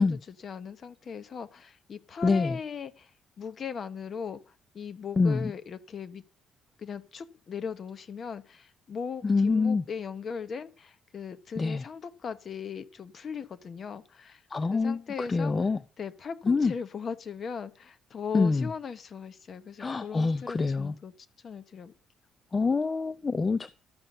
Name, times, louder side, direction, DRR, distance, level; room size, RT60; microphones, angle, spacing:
voice 1, 0.0-3.1 3.4-6.2 6.8-14.4 14.7-15.5 16.0-21.1 21.4-21.9, left 6 dB, 35° left, 1.0 m, -38 dB
voice 2, 2.2-2.6 5.2-5.5 9.2-9.8 11.6-11.8 14.5-15.8 16.5-16.7 18.3-18.7 19.8-21.0 22.5-23.7, left 4 dB, 20° left, 0.4 m, -26 dB
12.5 x 5.8 x 6.5 m
cardioid pair, 165°, 0 cm